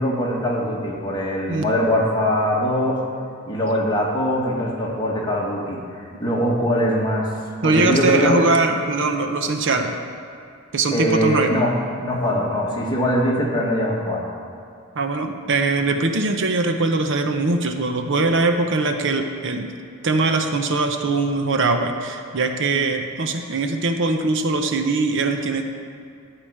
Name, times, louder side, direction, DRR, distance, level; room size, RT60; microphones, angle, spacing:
voice 1, 0.0-3.0 3.4-7.3 7.6-8.5 10.9-14.2, equal, 20° left, -4 dB, 1.8 m, -22 dB
voice 2, 7.6-10.0 10.7-11.5 15.0-19.7 20.0-25.6, right 3 dB, 60° right, 5 dB, 0.8 m, -21 dB
12.0 x 4.9 x 8.6 m, 2.5 s
head